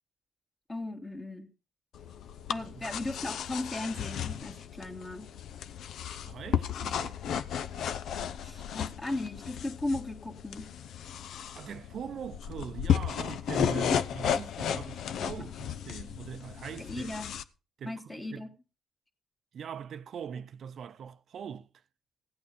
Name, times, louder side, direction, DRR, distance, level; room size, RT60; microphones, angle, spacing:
voice 1, 0.7-1.5 2.5-5.3 8.4-10.7 13.9-14.0 16.8-17.4 17.8-18.5, left 2 dB, 20° left, 2.0 m, -36 dB
sound 1, 1.9-17.4, left 9 dB, 75° left, 0.7 m, -34 dB
voice 2, 6.2-7.2 11.5-17.1 17.8-18.5 19.5-21.7, right 8 dB, 60° right, 0.6 m, -42 dB
16.5 x 8.7 x 5.0 m
cardioid pair, 90°, 0 cm